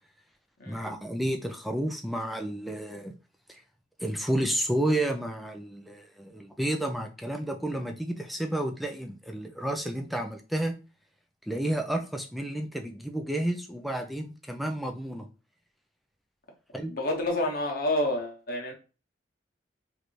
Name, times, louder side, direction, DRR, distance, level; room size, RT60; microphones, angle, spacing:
voice 1, 0.7-3.1 4.0-10.7 11.5-15.3 16.7-16.9, right 1 dB, ahead, 0.3 m, -31 dB
voice 2, 16.9-18.7, left 1 dB, 50° left, 0.8 m, -29 dB
3.2 x 2.6 x 3.1 m
head